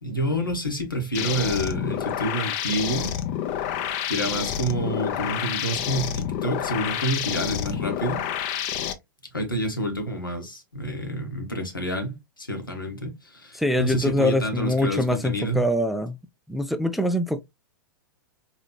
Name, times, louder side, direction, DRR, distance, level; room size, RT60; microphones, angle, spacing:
voice 1, 0.0-3.1 4.1-8.2 9.3-15.7, right 1 dB, 85° left, 1.2 m, -28 dB
sound 1, 1.1-8.9, left 9 dB, 40° left, 0.6 m, -29 dB
voice 2, 13.6-16.2 16.5-17.4, left 1 dB, ahead, 0.3 m, -24 dB
4.1 x 2.9 x 2.2 m
figure-of-eight pair, 100°, 11 cm